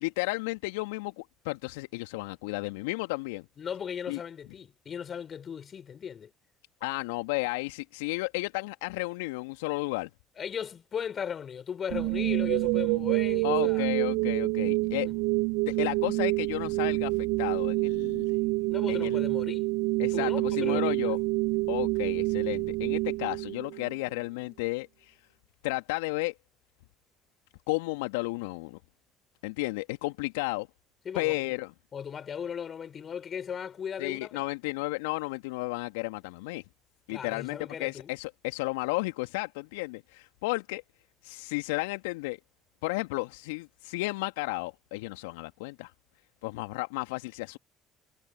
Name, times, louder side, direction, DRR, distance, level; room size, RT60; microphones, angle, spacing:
voice 1, 0.0-3.5 4.1-4.2 6.8-10.1 13.4-15.1 15.7-18.4 18.9-19.2 20.0-21.2 21.7-25.2 25.6-26.3 27.7-28.8 29.4-30.7 31.2-31.7 34.0-36.6 37.1-40.8 41.2-42.4 42.8-45.9 46.4-47.6, left 24 dB, 75° left, 1.9 m, -33 dB
voice 2, 3.6-6.3 10.4-13.9 18.7-19.7 20.1-21.1 31.0-31.5 31.9-34.3 37.1-38.1, left 7 dB, 45° left, 4.4 m, -37 dB
sound 1, 11.9-23.9, right 28 dB, 70° right, 0.7 m, -27 dB
figure-of-eight pair, 50°, 0 cm